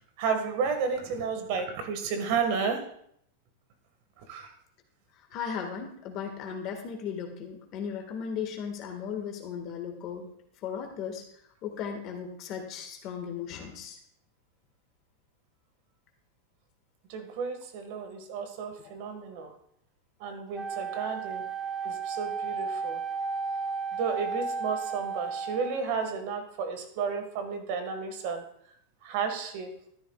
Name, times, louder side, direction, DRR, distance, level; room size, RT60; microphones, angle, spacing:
voice 1, 0.2-2.9 4.3-4.5 17.1-19.5 20.2-21.5 21.8-23.0 23.9-28.4 29.0-29.8, right 5 dB, 60° right, 8 dB, 1.7 m, -32 dB
voice 2, 5.3-10.3 10.6-11.2 11.6-14.0, left 7 dB, 45° left, 3 dB, 1.7 m, -36 dB
Wind instrument woodwind instrument, 20.5-26.0, right 5 dB, 5° right, 1.2 m, -33 dB
13.0 x 10.5 x 2.4 m, 0.68 s
hypercardioid pair, 110°, 0 cm